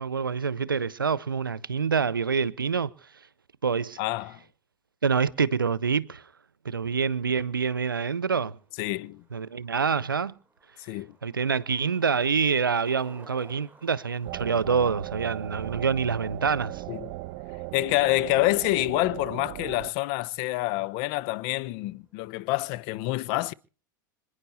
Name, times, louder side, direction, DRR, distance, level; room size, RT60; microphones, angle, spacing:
voice 1, 0.0-2.9 3.6-4.0 5.0-6.2 6.6-8.6 9.3-10.4 11.2-16.8, right 6 dB, 90° right, 0.7 m, -26 dB
voice 2, 4.0-4.4 8.8-9.2 10.8-11.1 16.9-17.1 17.7-23.5, left 19 dB, 55° left, 1.0 m, -27 dB
Skateboard, 7.4-22.5, right 2 dB, 15° right, 7.3 m, -59 dB
sound 1, 14.2-19.9, right 17 dB, 55° right, 1.2 m, -37 dB
26.5 x 10.0 x 4.1 m
hypercardioid pair, 85°, 11 cm